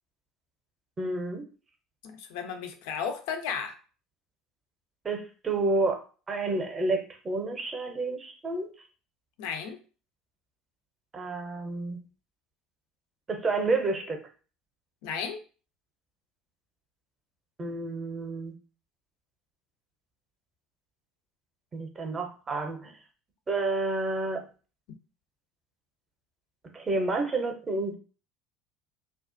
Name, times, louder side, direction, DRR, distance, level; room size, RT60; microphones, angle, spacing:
voice 1, 1.0-1.4 5.0-6.0 6.3-8.7 11.1-12.0 13.3-14.2 17.6-18.5 21.7-22.9 23.5-24.4 26.7-27.9, right 3 dB, 25° right, 0.6 m, -29 dB
voice 2, 2.0-3.7 9.4-9.8 15.0-15.4, left 6 dB, 60° left, 0.3 m, -34 dB
2.4 x 2.0 x 2.5 m
figure-of-eight pair, 65°, 0 cm